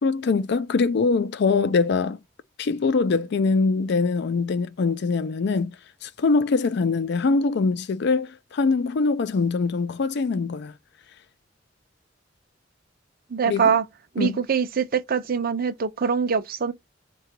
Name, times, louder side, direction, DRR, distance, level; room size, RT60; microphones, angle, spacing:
voice 1, 0.0-2.2 2.6-5.8 6.0-10.7 13.4-13.6 14.2-14.4, left 4 dB, 65° left, 0.4 m, -23 dB
voice 2, 13.3-13.8 14.1-16.7, right 6 dB, 50° right, 0.6 m, -23 dB
3.8 x 2.3 x 4.3 m
head